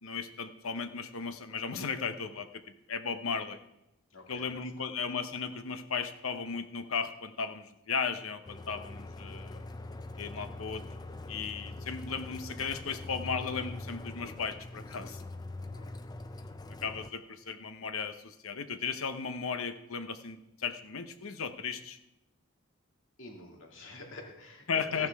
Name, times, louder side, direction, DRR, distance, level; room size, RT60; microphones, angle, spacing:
voice 1, 0.0-3.6 4.3-9.6 10.2-10.8 11.3-15.2 16.8-22.0 24.7-25.1, left 5 dB, 85° left, 10 dB, 0.9 m, -36 dB
voice 2, 4.1-4.5 4.8-4.9 15.7-15.9 23.2-25.1, left 1 dB, 65° left, 1 dB, 2.3 m, -48 dB
sound 1, 8.5-17.1, left 2 dB, 20° left, 0.4 m, -43 dB
14.5 x 11.5 x 3.5 m, 0.90 s
head